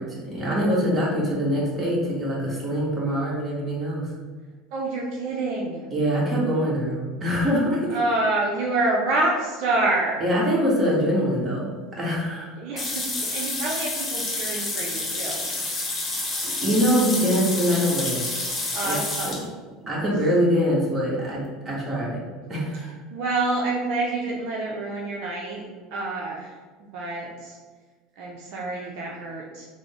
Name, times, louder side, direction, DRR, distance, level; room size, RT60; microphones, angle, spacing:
voice 1, 0.0-4.1 5.9-8.0 10.2-11.7 12.0-12.5 16.4-18.2 18.8-19.0 19.2-19.3 19.9-22.2 22.5-22.9, equal, 25° right, -5 dB, 1.4 m, -24 dB
voice 2, 4.7-5.9 7.9-10.2 12.6-15.4 18.7-19.5 23.1-25.6 25.9-26.5 26.8-27.6 28.2-29.7, right 2 dB, 65° right, -3 dB, 0.6 m, -27 dB
sound 1, 12.8-19.4, left 2 dB, 25° left, 1.0 m, -29 dB
3.7 x 2.1 x 3.6 m, 1.4 s
supercardioid pair, 95°, 0 cm